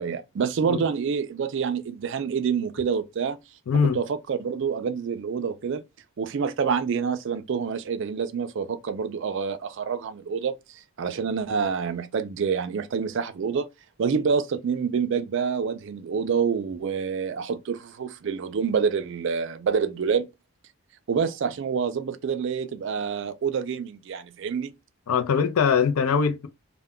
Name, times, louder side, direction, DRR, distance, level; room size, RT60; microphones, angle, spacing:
voice 1, 0.0-3.4 3.9-5.8 6.2-10.5 11.0-13.7 14.0-20.3 21.1-24.7, right 6 dB, 55° right, 0.3 m, -27 dB
voice 2, 3.7-4.0 25.1-26.5, left 6 dB, 75° left, 0.4 m, -22 dB
2.2 x 2.1 x 3.5 m
head